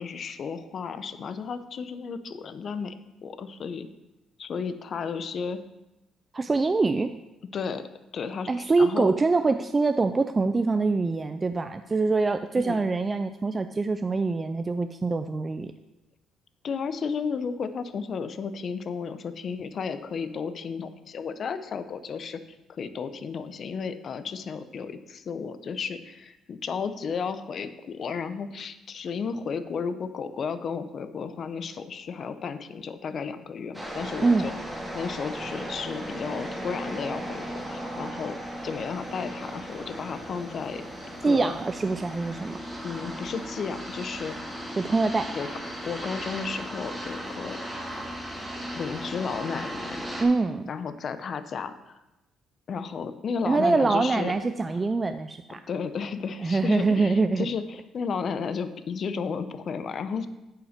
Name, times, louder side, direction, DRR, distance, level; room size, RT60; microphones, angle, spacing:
voice 1, 0.0-2.9 3.2-3.9 4.4-5.6 7.5-9.1 12.6-12.8 16.6-22.4 22.7-34.5 34.9-38.4 38.6-40.8 41.2-41.5 42.8-44.4 45.3-45.5 45.8-47.6 48.8-50.0 50.7-51.9 52.7-54.3 55.7-60.3, left 5 dB, 50° left, 11 dB, 0.6 m, -33 dB
voice 2, 6.3-7.1 8.5-15.7 34.2-34.5 41.2-42.6 44.8-45.3 50.2-50.7 53.4-55.6 56.4-57.5, right 3 dB, 25° right, 9 dB, 0.4 m, -24 dB
sound 1, 33.7-50.2, equal, 5° right, 1.8 m, -36 dB
8.4 x 5.7 x 5.0 m, 0.98 s
cardioid pair, 85°, 0 cm